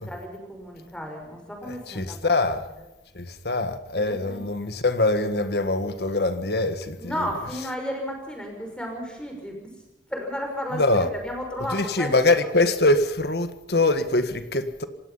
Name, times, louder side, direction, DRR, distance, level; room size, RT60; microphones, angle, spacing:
voice 1, 0.0-2.3 4.2-4.4 7.0-9.7 10.1-10.8 11.1-12.1, equal, 5° left, 5.8 m, -33 dB
voice 2, 1.6-2.7 3.2-7.3 10.7-11.1 11.7-14.8, left 2 dB, 65° left, 1.7 m, -23 dB
27.0 x 18.0 x 5.7 m
head